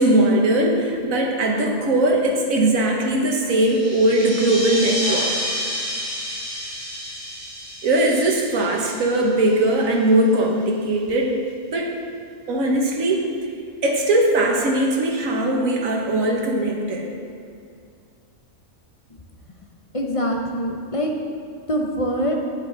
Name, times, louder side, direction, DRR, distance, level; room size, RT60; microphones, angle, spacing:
voice 1, 0.0-5.3 7.8-11.4 11.7-11.9 12.5-13.3 13.8-17.1, right 1 dB, 85° right, 0 dB, 1.6 m, -20 dB
sound 1, 3.6-9.7, equal, 30° right, 2.7 m, -30 dB
voice 2, 19.9-21.1 21.7-22.3, equal, 30° left, 1 dB, 0.7 m, -24 dB
9.2 x 7.9 x 3.9 m, 2.4 s
omnidirectional pair, 1.4 m